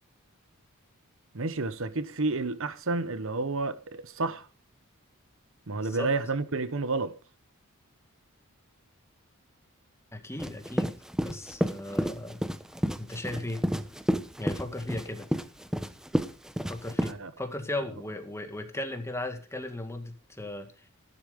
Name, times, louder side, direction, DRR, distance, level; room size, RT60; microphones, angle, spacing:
voice 1, 1.3-4.5 5.7-7.2 17.0-17.3, right 3 dB, 65° right, 1.0 m, -30 dB
voice 2, 5.7-6.1 10.1-12.4 13.0-13.7 14.4-15.3 16.7-20.7, left 1 dB, 10° left, 2.0 m, -36 dB
sound 1, 10.4-17.1, equal, 5° right, 0.9 m, -30 dB
14.5 x 12.0 x 5.2 m
head